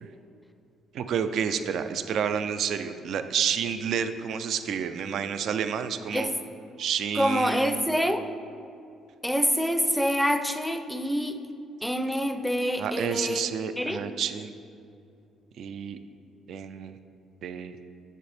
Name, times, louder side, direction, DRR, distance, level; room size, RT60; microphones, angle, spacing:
voice 1, 0.9-6.3 6.8-7.8 12.8-14.5 15.6-16.0 16.5-17.0 17.4-17.8, right 7 dB, 65° right, 10 dB, 0.3 m, -30 dB
voice 2, 7.1-8.3 9.2-11.4 11.8-14.0, equal, ahead, 8 dB, 0.4 m, -26 dB
7.1 x 6.6 x 3.3 m, 2.6 s
cardioid pair, 85°, 0 cm